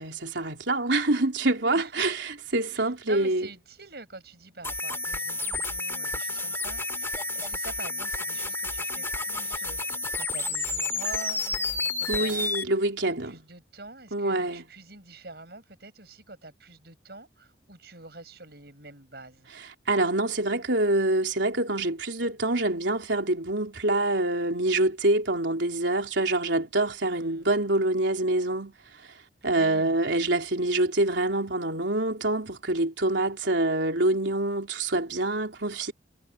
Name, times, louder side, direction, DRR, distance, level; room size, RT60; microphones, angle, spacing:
voice 1, 0.0-3.5 12.1-13.3 14.1-14.6 19.9-29.2 29.4-35.9, right 2 dB, 80° right, 3.7 m, -26 dB
voice 2, 1.7-2.1 2.7-12.5 13.0-19.5 27.0-27.5 29.5-30.0, right 3 dB, 60° right, 7.6 m, -46 dB
sound 1, 4.6-12.6, left 3 dB, 15° left, 2.1 m, -30 dB
head